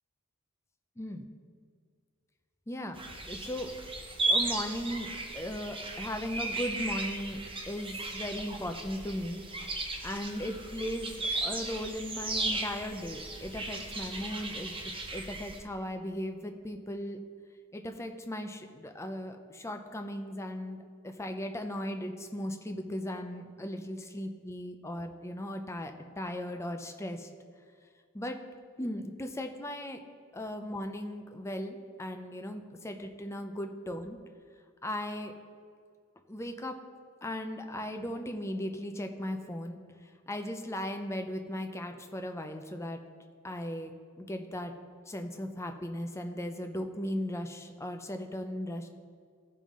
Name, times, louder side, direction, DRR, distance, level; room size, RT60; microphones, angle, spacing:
voice 1, 1.0-1.3 2.7-3.0 3.3-3.7 4.3-7.4 7.7-9.4 10.0-14.7 15.1-17.2 17.7-27.3 28.1-28.4 28.8-30.0 30.3-34.2 34.8-35.3 36.3-36.8 37.2-39.8 40.3-43.0 43.4-44.7 45.1-48.9, left 1 dB, 15° left, 5 dB, 0.5 m, -37 dB
sound 1, 2.9-15.6, right 2 dB, 25° right, 0.8 m, -36 dB
14.5 x 5.4 x 3.7 m, 2.1 s
head